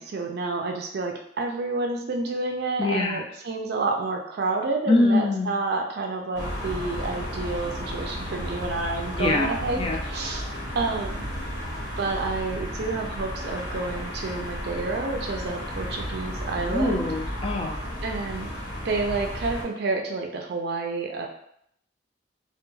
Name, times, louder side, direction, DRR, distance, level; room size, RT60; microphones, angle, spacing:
voice 1, 0.0-10.5 10.7-11.2 12.0-17.1 18.0-18.5 18.8-21.3, right 3 dB, 60° right, 2 dB, 0.4 m, -29 dB
voice 2, 2.8-3.2 4.9-5.5 9.2-10.0 16.6-17.8, left 2 dB, 30° left, 0 dB, 0.3 m, -24 dB
sound 1, 6.4-19.6, equal, 65° left, 1.1 m, -33 dB
2.2 x 2.2 x 3.1 m, 0.69 s
head